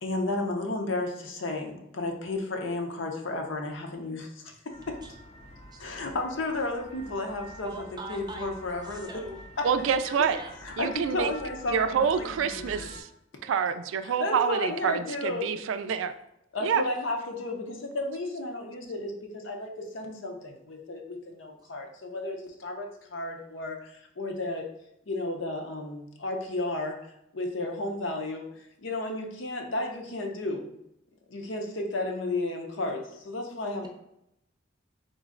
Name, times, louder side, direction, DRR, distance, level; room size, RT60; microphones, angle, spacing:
voice 1, 0.0-4.5 4.9-5.0 5.8-7.7 8.1-9.1 9.6-10.2 10.6-12.9 14.0-15.6 16.5-24.7 25.1-27.0 27.3-30.7 31.3-33.9, left 2 dB, 70° left, 3 dB, 0.7 m, -33 dB
sound 1, 4.7-13.0, left 1 dB, 35° left, 0.6 m, -47 dB
voice 2, 7.6-8.5 8.8-9.4 10.3-10.6 33.8-33.9, right 2 dB, 20° right, 2 dB, 0.6 m, -42 dB
voice 3, 9.6-10.4 10.8-11.3 11.7-13.1 13.4-16.1 16.6-16.8, right 7 dB, 80° right, 10 dB, 0.3 m, -27 dB
3.8 x 3.0 x 3.7 m, 0.81 s
head